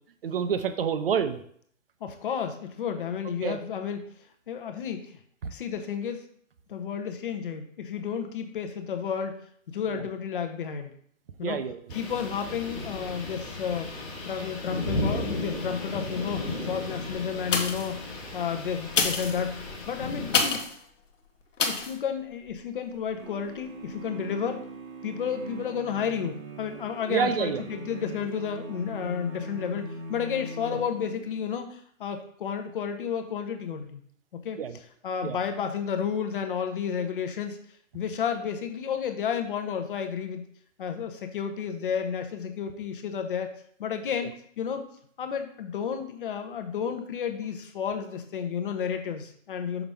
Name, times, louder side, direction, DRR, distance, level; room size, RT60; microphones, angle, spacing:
voice 1, 0.2-1.4 3.4-3.6 5.4-5.5 9.9-10.0 11.4-11.9 14.2-14.5 27.1-27.6 30.7-30.8 34.6-34.8 35.2-35.4 44.2-44.3, right 7 dB, 45° right, 10 dB, 0.6 m, -28 dB
voice 2, 2.0-4.0 4.5-5.2 5.5-6.3 6.7-9.4 9.7-10.9 11.4-11.6 11.9-13.9 14.2-18.0 18.3-20.6 21.6-24.7 25.0-34.0 34.3-34.6 35.0-37.6 37.9-40.5 40.8-43.5 43.8-44.8 45.2-49.8, left 7 dB, 40° left, 6 dB, 0.8 m, -32 dB
sound 1, 11.9-20.5, left 2 dB, 10° left, 0.8 m, -35 dB
sound 2, 17.5-18.0 18.8-20.8 21.6-22.0 22.5-22.6, left 5 dB, 65° left, 1.1 m, -28 dB
sound 3, 23.2-31.5, right 2 dB, 85° right, 1.2 m, -41 dB
5.9 x 5.4 x 3.4 m, 0.62 s
hypercardioid pair, 155°, 40 cm